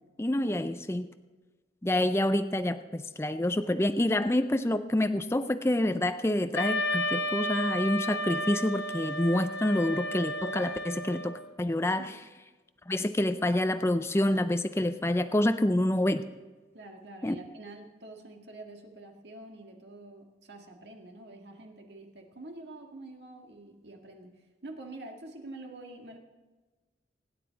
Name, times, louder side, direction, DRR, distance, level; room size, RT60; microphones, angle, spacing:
voice 1, 0.2-1.1 1.8-12.1 12.9-16.3 17.2-17.4, left 1 dB, 15° left, 9 dB, 0.4 m, -27 dB
Wind instrument woodwind instrument, 6.5-11.4, left 1 dB, 75° left, 1.1 m, -32 dB
voice 2, 16.7-24.4 24.6-26.2, right 2 dB, 70° right, 2 dB, 1.9 m, -46 dB
25.0 x 9.9 x 4.0 m, 1.3 s
head